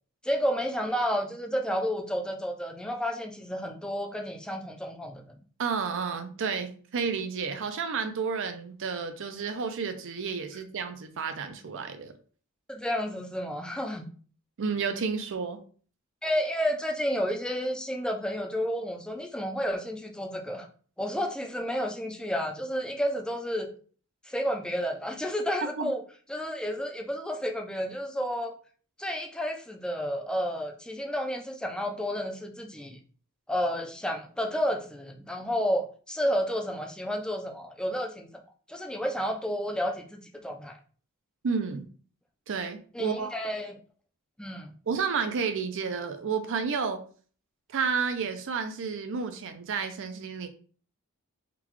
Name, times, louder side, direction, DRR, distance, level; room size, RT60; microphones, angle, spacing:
voice 1, 0.2-5.2 12.7-14.1 16.2-20.7 21.0-23.7 24.3-26.0 26.3-28.5 29.0-33.0 33.5-38.3 38.7-40.8 42.9-43.7 44.4-44.7, equal, 5° left, 0.4 m, -31 dB
voice 2, 5.6-12.1 14.6-15.6 25.8-25.9 41.4-41.9 42.5-43.4 44.9-47.0 47.7-50.5, right 5 dB, 60° right, 0.5 m, -31 dB
3.6 x 2.3 x 3.1 m
head